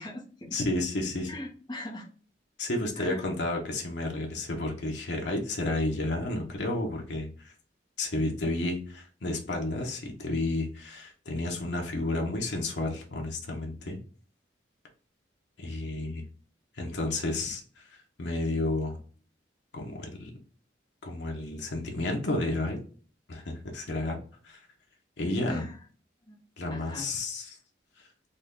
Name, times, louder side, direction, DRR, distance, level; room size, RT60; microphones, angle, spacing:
voice 1, 0.0-0.6 1.3-2.1 3.0-3.2 25.5-25.8 26.3-26.4 26.7-27.1, left 1 dB, 20° left, -1 dB, 0.8 m, -40 dB
voice 2, 0.5-1.3 2.6-7.5 8.0-14.0 15.6-16.2 16.7-17.9 18.2-19.0 19.7-20.3 21.0-22.8 23.3-24.2 24.4-24.6 25.2-25.6 26.6-27.6, left 2 dB, 70° left, 0 dB, 0.8 m, -31 dB
3.8 x 2.2 x 3.6 m, 0.42 s
head